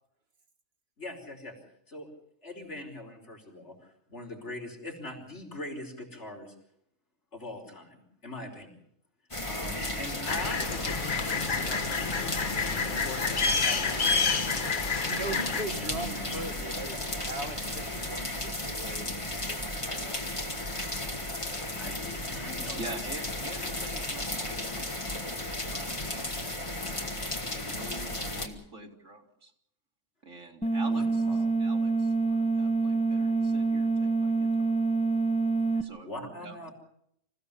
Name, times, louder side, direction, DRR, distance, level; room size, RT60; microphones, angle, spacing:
voice 1, 1.0-1.6 1.9-2.1 2.4-6.5 7.3-8.7 9.4-14.1 15.1-16.7 21.8-22.9 23.6-23.7 30.9-31.5 35.7-36.7, left 1 dB, 65° left, 1 dB, 5.3 m, -42 dB
sound 1, 9.3-28.5, left 1 dB, 25° left, 2.4 m, -34 dB
sound 2, 10.2-15.6, left 5 dB, 45° left, 1.2 m, -29 dB
voice 2, 15.0-17.0 17.2-20.3, right 2 dB, 55° right, 6 dB, 1.8 m, -40 dB
voice 3, 22.8-26.7 26.9-29.5 30.2-34.7 35.7-36.7, right 2 dB, 85° right, 2 dB, 3.0 m, -46 dB
sound 3, 30.6-35.8, right 3 dB, 5° left, 0.8 m, -26 dB
26.5 x 16.0 x 7.0 m, 0.72 s
omnidirectional pair, 1.3 m